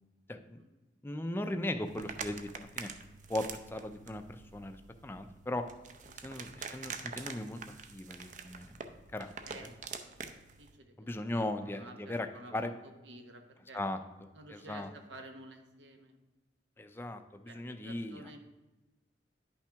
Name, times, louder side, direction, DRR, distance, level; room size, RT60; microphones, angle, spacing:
voice 1, 1.0-2.9 3.3-4.8 5.0-5.6 6.2-7.6 7.9-8.7 9.1-9.3 11.0-12.3 12.5-12.7 13.7-14.0 14.5-14.9 16.8-18.4, left 1 dB, 10° left, 7 dB, 0.4 m, -37 dB
sound 1, 1.8-10.8, right 5 dB, 45° right, 0.6 m, -46 dB
voice 2, 9.4-10.3 10.6-11.1 11.4-13.8 14.3-16.2 17.5-18.4, right 2 dB, 85° right, 5 dB, 1.1 m, -52 dB
10.5 x 5.7 x 3.4 m, 1.1 s
head